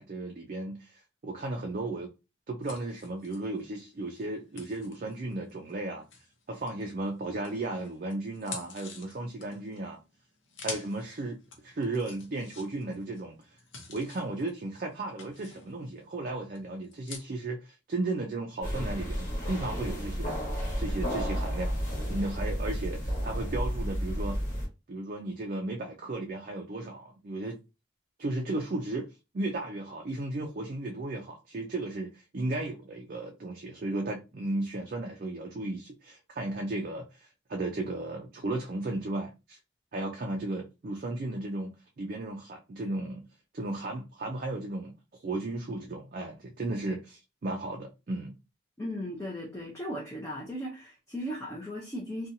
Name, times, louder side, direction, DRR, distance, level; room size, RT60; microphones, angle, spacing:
voice 1, 0.0-2.1 2.5-6.0 6.5-10.0 10.6-11.4 11.6-13.6 13.9-20.4 20.8-24.4 24.9-27.6 28.2-39.6 39.9-43.2 43.5-48.4, right 2 dB, 45° right, 0.4 m, -35 dB
sound 1, 2.6-7.0 7.4-17.2, left 4 dB, 80° left, 0.7 m, -48 dB
sound 2, 18.6-24.7, equal, 40° left, 1.2 m, -32 dB
voice 2, 48.8-52.3, equal, 15° left, 0.5 m, -37 dB
2.7 x 2.2 x 2.7 m
head